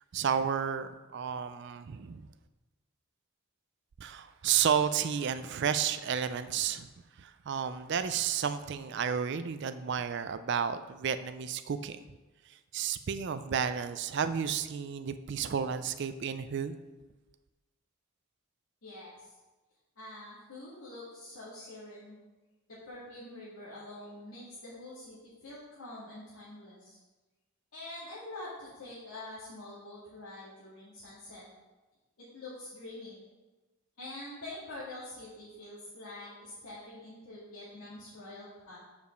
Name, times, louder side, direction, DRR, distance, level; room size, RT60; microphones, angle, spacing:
voice 1, 0.1-2.3 4.0-6.9 7.2-12.0 12.7-16.8, right 7 dB, 50° right, 11 dB, 0.3 m, -32 dB
voice 2, 18.8-19.1 20.0-22.2 22.7-27.0 27.7-31.4 32.2-33.2 34.0-38.8, left 2 dB, 80° left, -10 dB, 1.9 m, -46 dB
5.2 x 4.9 x 6.4 m, 1.2 s
head